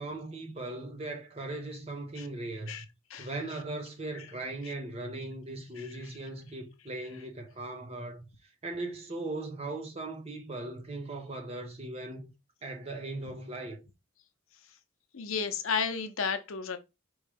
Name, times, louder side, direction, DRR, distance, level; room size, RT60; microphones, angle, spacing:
voice 1, 0.0-2.7 3.2-8.3 8.6-12.3 12.6-13.8, right 2 dB, 30° right, 0.8 m, -38 dB
voice 2, 15.1-16.8, left 6 dB, 75° left, 0.7 m, -32 dB
4.6 x 3.1 x 3.4 m
head